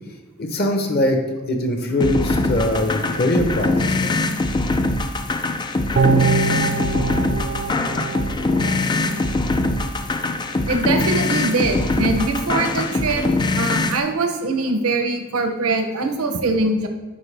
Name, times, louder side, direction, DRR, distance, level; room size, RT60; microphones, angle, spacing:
voice 1, 0.4-1.2 1.5-4.2, left 1 dB, 45° left, 3 dB, 0.8 m, -22 dB
sound 1, 2.0-14.0, left 2 dB, 20° left, 0.3 m, -22 dB
sound 2, 6.0-9.3 9.7-9.8, right 6 dB, 45° right, 0.4 m, -24 dB
voice 2, 10.7-13.3 13.6-16.9, right 3 dB, 80° right, 5 dB, 0.8 m, -22 dB
10.5 x 4.6 x 3.3 m, 1.2 s
head